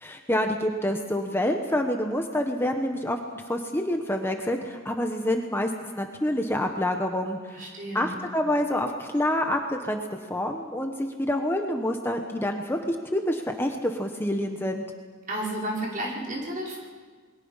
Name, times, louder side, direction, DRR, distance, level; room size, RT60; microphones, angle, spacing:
voice 1, 0.0-5.7 6.0-7.7 7.9-10.0 10.3-14.8, left 1 dB, 10° left, 4 dB, 1.2 m, -27 dB
voice 2, 7.5-8.2 15.3-16.8, right 1 dB, 45° right, -3 dB, 5.5 m, -32 dB
28.5 x 21.5 x 5.7 m, 1.5 s
head